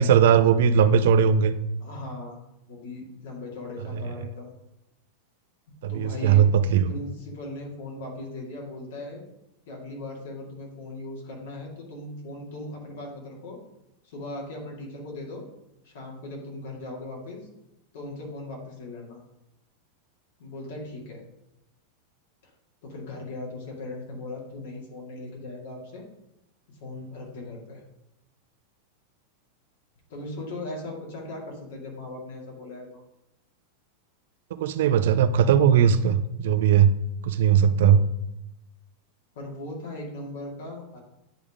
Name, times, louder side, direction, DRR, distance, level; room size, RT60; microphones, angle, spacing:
voice 1, 0.0-1.5 5.8-6.9 34.6-36.9 37.2-38.0, right 8 dB, 75° right, 11 dB, 0.5 m, -19 dB
voice 2, 1.8-2.4 2.7-4.5 5.7-6.5 6.9-9.2 9.7-13.6 14.0-15.4 15.8-17.5 17.9-19.2 20.4-21.2 22.8-26.0 26.7-27.8 30.1-33.0 39.4-41.0, left 2 dB, 75° left, -1 dB, 2.2 m, -38 dB
9.8 x 3.5 x 3.6 m, 0.90 s
supercardioid pair, 125°, 0 cm